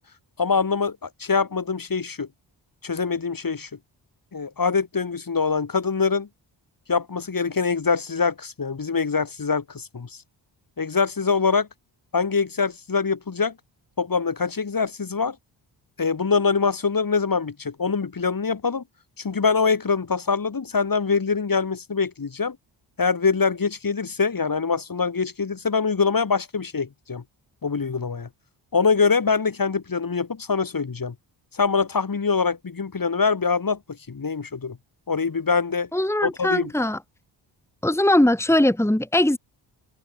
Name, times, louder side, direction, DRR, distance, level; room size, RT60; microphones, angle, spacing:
voice 1, 0.4-2.3 2.8-3.7 4.3-6.3 6.9-10.1 10.8-11.7 12.1-13.5 14.0-15.4 16.0-18.8 19.2-22.6 23.0-27.2 27.6-28.3 28.7-31.1 31.5-33.8 34.1-34.8 35.1-35.9 36.2-36.7, left 5 dB, 45° left, 4.3 m, -24 dB
voice 2, 35.9-37.0 37.8-39.4, left 1 dB, 5° left, 2.4 m, -20 dB
open air
cardioid pair, 55°, 47 cm